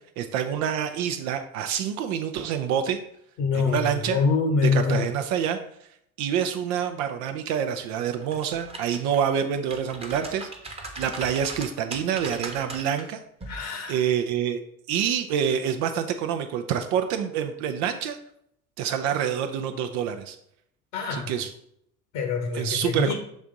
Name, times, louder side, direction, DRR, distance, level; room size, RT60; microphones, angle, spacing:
voice 1, 0.2-3.0 3.5-4.2 4.6-5.6 6.2-10.5 11.0-13.2 13.9-14.6 14.9-18.2 18.8-20.4 21.1-21.5 22.5-23.1, right 8 dB, 45° right, 7 dB, 0.6 m, -27 dB
voice 2, 3.4-5.1 13.5-14.0 20.9-21.3 22.1-23.1, left 5 dB, 55° left, 4 dB, 1.2 m, -25 dB
sound 1, 8.2-9.2 9.6-13.0 13.4-13.6, right 2 dB, 15° right, 1.1 m, -38 dB
7.2 x 3.4 x 3.8 m, 0.73 s
figure-of-eight pair, 65°, 41 cm